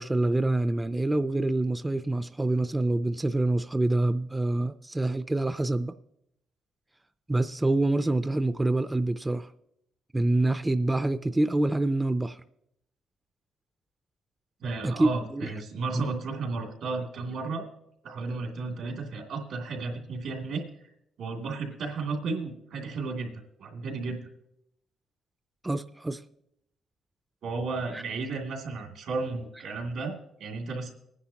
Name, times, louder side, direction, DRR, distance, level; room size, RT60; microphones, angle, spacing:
voice 1, 0.0-5.9 7.3-9.5 10.1-12.4 14.8-15.5 15.9-16.1 25.6-26.2 27.9-28.0, right 2 dB, 15° right, 11 dB, 0.4 m, -26 dB
voice 2, 14.6-17.7 18.0-20.6 21.2-23.3 23.6-24.2 27.4-30.9, right 4 dB, 75° right, 1 dB, 2.5 m, -33 dB
20.0 x 9.9 x 2.9 m, 0.78 s
cardioid pair, 90°, 0 cm